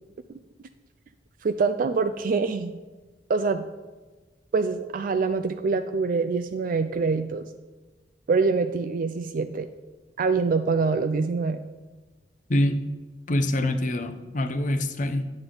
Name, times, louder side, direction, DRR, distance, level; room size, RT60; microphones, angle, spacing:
voice 1, 1.4-2.8 3.3-3.7 4.5-7.4 8.3-9.7 10.2-11.6, right 4 dB, 50° right, 8 dB, 0.4 m, -25 dB
voice 2, 12.5-12.9 13.3-15.3, left 1 dB, 45° left, 9 dB, 0.7 m, -25 dB
9.9 x 7.8 x 3.9 m, 1.3 s
head